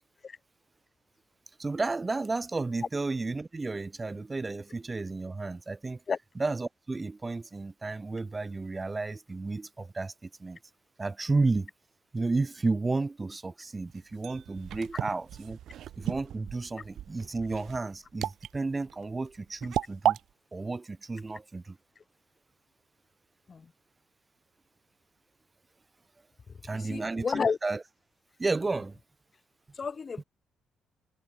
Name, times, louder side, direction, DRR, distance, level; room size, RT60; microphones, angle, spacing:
voice 1, 1.6-6.0 6.3-10.6 11.0-11.7 12.1-15.6 16.0-20.2 20.5-21.8 26.6-27.8 28.4-29.0 30.2-30.3, right 3 dB, 25° right, 2.7 m, -32 dB
sound 1, 13.9-20.2, right 11 dB, 75° right, 0.5 m, -34 dB
voice 2, 26.7-27.6 29.8-30.2, left 5 dB, 40° left, 0.8 m, -30 dB
cardioid pair, 90°, 0 cm